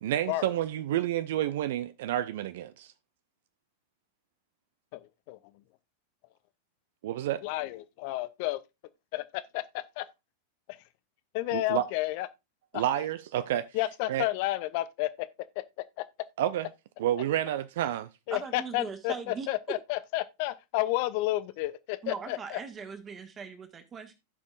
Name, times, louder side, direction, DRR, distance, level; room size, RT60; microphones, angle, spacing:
voice 1, 0.0-2.9 7.0-7.4 11.5-11.8 12.7-13.7 14.1-14.3 16.4-16.7 17.0-18.1, right 12 dB, 55° right, 0.4 m, -29 dB
voice 2, 4.9-5.4 7.4-8.6 9.1-10.1 11.3-12.3 12.7-12.8 13.7-15.3 16.0-16.1 18.3-22.6, left 17 dB, 45° left, 0.5 m, -31 dB
voice 3, 18.3-19.5 22.0-24.1, right 5 dB, 25° right, 1.6 m, -40 dB
16.0 x 5.3 x 2.4 m
figure-of-eight pair, 90°, 0 cm